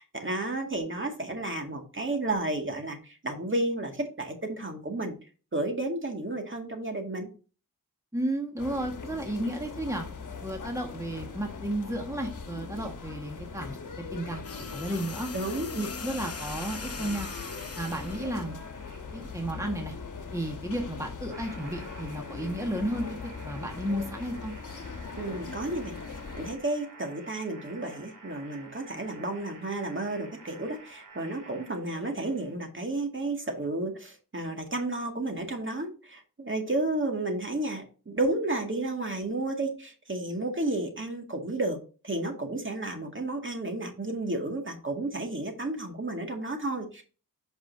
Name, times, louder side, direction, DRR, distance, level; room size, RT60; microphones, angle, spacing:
voice 1, 0.0-5.2 5.5-7.3 15.3-15.8 25.1-25.9 26.4-41.8 42.0-47.0, right 2 dB, 35° right, 3 dB, 2.1 m, -32 dB
voice 2, 8.1-10.1 10.4-13.8 14.1-14.4 14.7-15.3 15.8-17.3 17.8-18.6 19.1-19.9 20.3-24.5, right 1 dB, 10° right, 2 dB, 1.6 m, -33 dB
sound 1, 8.6-26.6, left 5 dB, 65° left, 1.2 m, -40 dB
sound 2, 14.4-18.3 19.5-19.7, left 5 dB, 45° left, 0.8 m, -41 dB
sound 3, 15.8-32.6, right 3 dB, 70° right, 2.6 m, -50 dB
8.8 x 5.6 x 2.7 m, 0.35 s
wide cardioid pair, 65°, 33 cm